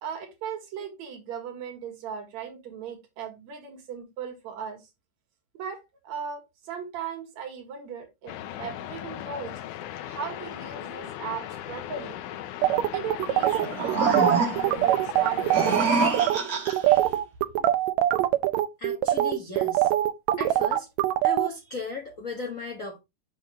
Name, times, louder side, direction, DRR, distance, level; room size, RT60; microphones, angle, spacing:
voice 1, 0.0-4.9 5.5-8.3 8.6-9.5 10.0-12.2 12.8-16.5 17.0-17.6, right 7 dB, 65° right, 2.9 m, -38 dB
sound 1, 8.3-15.8, left 12 dB, 80° left, 2.1 m, -38 dB
sound 2, 12.6-15.8 16.1-16.4 16.7-21.5, right 14 dB, 85° right, 1.6 m, -23 dB
sound 3, 13.5-14.8 15.4-17.0, right 4 dB, 35° right, 1.6 m, -25 dB
voice 2, 18.8-19.9 20.4-20.9 21.2-23.0, left 3 dB, 50° left, 0.9 m, -36 dB
6.2 x 6.1 x 3.4 m
omnidirectional pair, 3.7 m